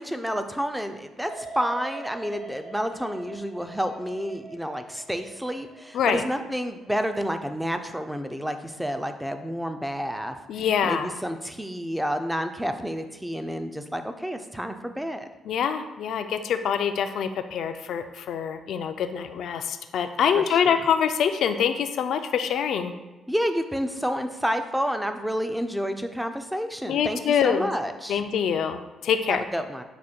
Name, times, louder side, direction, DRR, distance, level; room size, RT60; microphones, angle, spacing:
voice 1, 0.0-10.4 10.8-15.3 20.4-20.8 23.3-28.2 29.3-29.8, equal, 5° right, 8 dB, 0.3 m, -30 dB
sound 1, 1.3-8.2 8.6-9.1, right 3 dB, 70° right, 0.9 m, -44 dB
voice 2, 10.5-11.1 15.5-22.9 26.9-27.7 28.1-29.4, left 7 dB, 70° left, 8 dB, 0.3 m, -25 dB
4.8 x 2.2 x 4.2 m, 1.1 s
cardioid pair, 90°, 0 cm